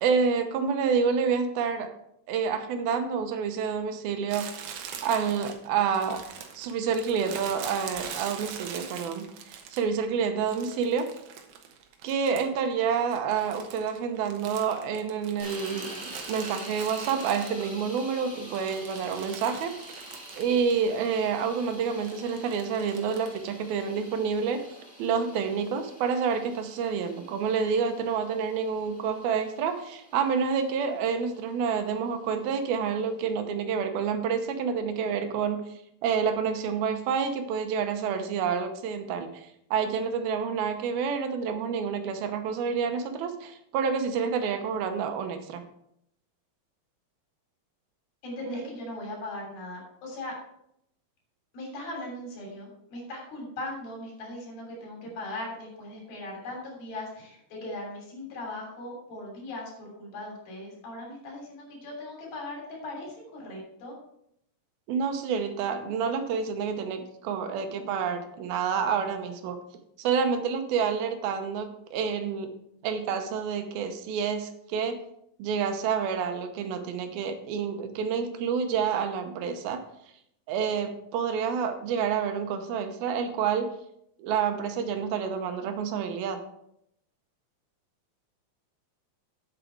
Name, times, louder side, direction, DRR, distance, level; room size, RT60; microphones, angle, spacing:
voice 1, 0.0-1.9 2.3-4.5 5.0-6.2 6.5-11.1 12.0-19.8 20.4-35.7 36.0-45.6 48.4-48.6 64.9-69.6 70.0-72.5 72.8-75.0 75.4-79.8 80.5-83.8 84.2-86.4, right 6 dB, 85° right, 7 dB, 2.8 m, -28 dB
Crumpling crinkling, 4.3-10.0 10.5-12.7 12.9-18.0 18.4-20.8 21.0-21.1 22.0-23.4, right 7 dB, 70° right, 2.2 m, -42 dB
sound 1, 15.4-33.3, equal, 5° left, 2.0 m, -47 dB
voice 2, 48.2-50.3 51.5-64.0, left 1 dB, 80° left, -1 dB, 5.1 m, -39 dB
9.0 x 7.9 x 4.5 m, 0.75 s
omnidirectional pair, 4.2 m